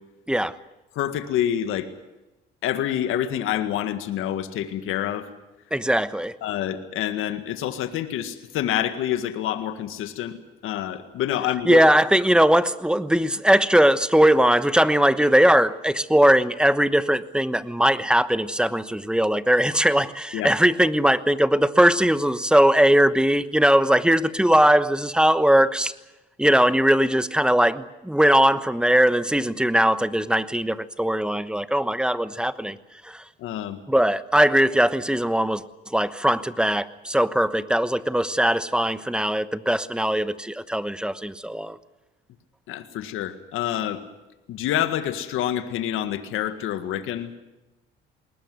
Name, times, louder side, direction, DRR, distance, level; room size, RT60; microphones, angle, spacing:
voice 1, 1.0-1.9 2.6-5.3 6.4-10.4 10.6-11.8 20.3-20.5 33.4-33.8 42.7-44.0 44.5-47.3, left 11 dB, 75° left, 9 dB, 1.8 m, -27 dB
voice 2, 5.7-6.3 11.6-25.9 26.4-32.8 33.0-33.2 33.9-35.6 35.9-41.8, right 1 dB, 5° right, 14 dB, 1.1 m, -20 dB
21.0 x 19.0 x 9.4 m, 0.99 s
cardioid pair, 90°, 21 cm